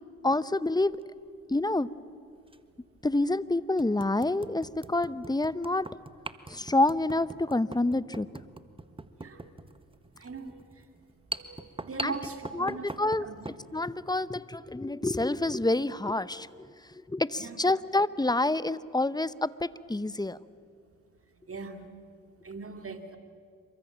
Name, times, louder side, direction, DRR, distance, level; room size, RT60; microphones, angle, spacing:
voice 1, 0.2-1.0 1.5-1.9 3.0-5.9 6.5-8.3 12.0-12.2 12.5-13.3 13.7-16.7 17.1-20.4, left 2 dB, 10° left, 17 dB, 0.9 m, -27 dB
sound 1, 0.8-1.0 2.5-2.6 3.1-3.2 3.8-13.6, right 2 dB, 15° right, 1.6 m, -42 dB
voice 2, 10.2-10.6 11.4-12.9 13.2-13.4 17.4-17.6 21.5-21.8 22.4-23.2, right 4 dB, 40° right, 6 dB, 3.2 m, -40 dB
27.5 x 24.0 x 7.6 m, 2.2 s
supercardioid pair, 50°, 34 cm